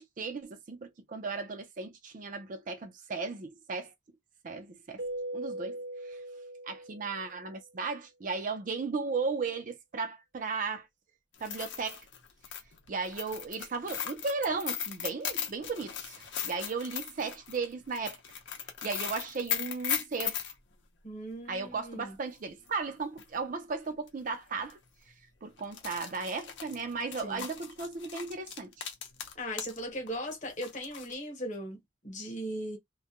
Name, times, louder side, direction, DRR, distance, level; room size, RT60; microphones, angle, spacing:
voice 1, 0.0-3.9 4.4-5.0 5.3-6.2 6.6-10.9 11.4-12.1 12.9-18.2 18.8-20.5 21.5-24.8 25.1-25.2 25.4-28.9, right 4 dB, 40° right, 0.4 m, -36 dB
Keyboard (musical), 5.0-7.5, right 1 dB, 75° right, 0.9 m, -40 dB
sound 1, 11.3-20.5 22.7-22.8 23.2-23.3 24.1-24.3 24.6-24.7 25.6-29.8 30.1-31.1, left 9 dB, 65° left, 0.6 m, -37 dB
voice 2, 21.0-22.1 27.2-27.4 29.3-32.8, equal, 40° left, 1.0 m, -38 dB
2.3 x 2.1 x 2.8 m
head